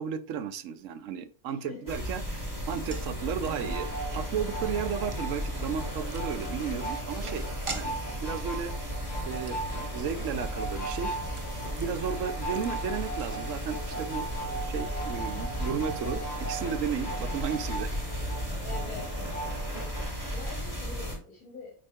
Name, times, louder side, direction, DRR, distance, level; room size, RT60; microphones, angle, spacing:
voice 1, 0.0-8.7 9.2-11.1 11.7-14.3 14.6-17.9, right 7 dB, 65° right, 12 dB, 0.9 m, -34 dB
voice 2, 1.5-1.9 3.2-3.8 18.6-19.1 20.3-21.7, left 4 dB, 75° left, -3 dB, 2.6 m, -44 dB
sound 1, 1.9-21.2, equal, 10° right, 2.7 m, -35 dB
sound 2, 2.9-13.9 14.1-14.2 14.5-14.7, right 4 dB, 35° right, 0.5 m, -47 dB
sound 3, 3.6-20.1, right 2 dB, 40° left, 3.9 m, -39 dB
9.0 x 4.0 x 3.5 m, 0.42 s
omnidirectional pair, 1.5 m